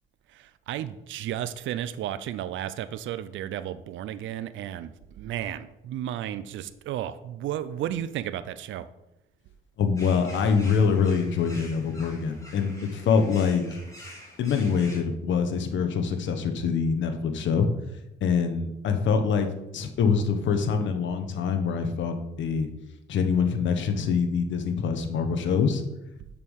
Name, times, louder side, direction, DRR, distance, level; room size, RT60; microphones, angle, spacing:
voice 1, 0.3-8.9, right 11 dB, 75° right, 13 dB, 0.5 m, -33 dB
voice 2, 9.8-13.6 14.4-17.7 18.2-19.5 19.7-22.7 23.1-25.8, left 6 dB, 70° left, 7 dB, 1.1 m, -25 dB
sound 1, 10.0-15.0, left 1 dB, 15° left, 2.6 m, -47 dB
6.8 x 5.5 x 6.4 m, 0.93 s
cardioid pair, 90°, 20 cm